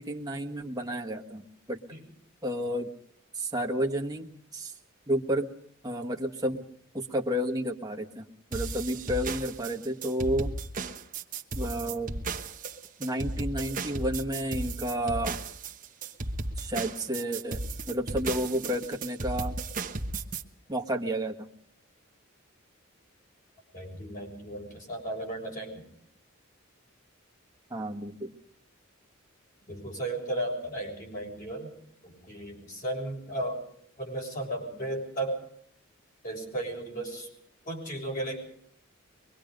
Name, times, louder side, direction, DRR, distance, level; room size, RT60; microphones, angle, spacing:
voice 1, 0.0-1.8 2.4-2.9 3.4-4.2 4.5-4.7 5.1-5.5 5.8-6.6 6.9-8.2 8.5-10.5 11.5-12.1 13.0-15.4 16.6-17.6 17.9-19.6 20.7-21.3 27.7-28.3, equal, 20° right, 2 dB, 1.5 m, -31 dB
sound 1, 8.5-20.4, right 3 dB, 40° right, 1.1 m, -35 dB
voice 2, 23.7-25.9 29.7-31.7 32.0-33.6 34.0-35.4 36.2-37.3 37.6-38.4, right 1 dB, 40° left, 1 dB, 6.9 m, -35 dB
23.5 x 22.5 x 5.2 m, 0.64 s
head